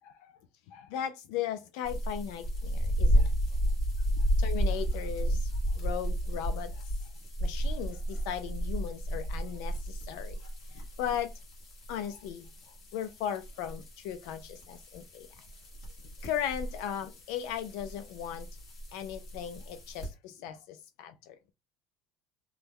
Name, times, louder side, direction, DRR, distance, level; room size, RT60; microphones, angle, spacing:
voice 1, 0.0-0.4 0.7-3.4 4.1-6.9 7.4-11.3 11.9-15.3 16.2-18.5 18.9-21.5, left 9 dB, 75° left, 0.4 m, -37 dB
sound 1, 1.8-20.1, equal, 40° left, 1.5 m, -33 dB
3.1 x 2.2 x 3.5 m
cardioid pair, 170°, 0 cm